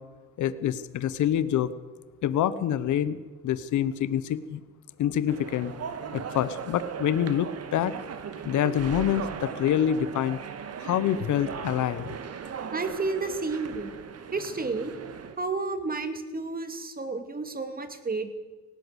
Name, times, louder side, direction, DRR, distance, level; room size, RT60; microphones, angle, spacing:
voice 1, 0.4-1.7 2.2-3.2 3.4-4.6 5.0-5.7 6.1-7.9 8.4-10.4 10.8-12.1, left 10 dB, 75° left, 15 dB, 1.0 m, -26 dB
sound 1, 5.3-15.4, right 7 dB, 55° right, 1.8 m, -38 dB
voice 2, 12.7-13.9 14.3-14.9 15.4-18.3, right 3 dB, 30° right, 8 dB, 2.6 m, -31 dB
18.5 x 17.5 x 8.1 m, 1.3 s
cardioid pair, 90°, 30 cm